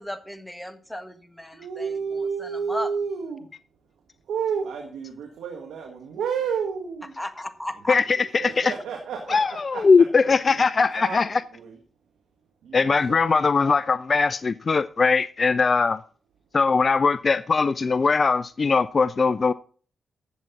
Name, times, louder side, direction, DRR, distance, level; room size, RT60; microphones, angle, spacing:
voice 1, 0.0-2.9 7.2-8.0, left 1 dB, 10° left, 1.6 m, -35 dB
voice 2, 1.5-3.5 4.3-7.1 7.9-9.8 10.2-10.6 10.9-11.8 12.6-13.4, right 6 dB, 80° right, 1.6 m, -31 dB
voice 3, 7.9-8.7 9.3-11.4 12.7-16.0 16.5-19.5, left 4 dB, 45° left, 0.4 m, -20 dB
12.0 x 7.7 x 4.0 m
supercardioid pair, 45°, 0 cm